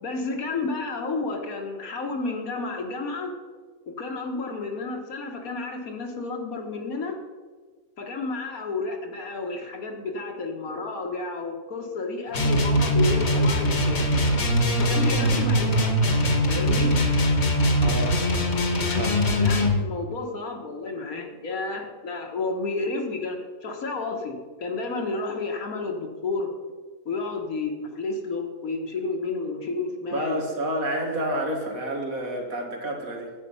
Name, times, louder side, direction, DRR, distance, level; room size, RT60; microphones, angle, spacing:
voice 1, 0.0-3.3 4.0-7.2 8.0-14.0 14.8-16.0 16.5-17.0 19.4-26.5 27.1-30.4, left 3 dB, 70° left, 3 dB, 1.8 m, -31 dB
sound 1, 12.3-19.8, equal, 50° left, 1.5 m, -22 dB
voice 2, 17.8-18.2 19.0-19.2 30.1-33.3, right 1 dB, 70° right, 1 dB, 2.2 m, -29 dB
10.5 x 8.3 x 5.5 m, 1.5 s
omnidirectional pair, 1.6 m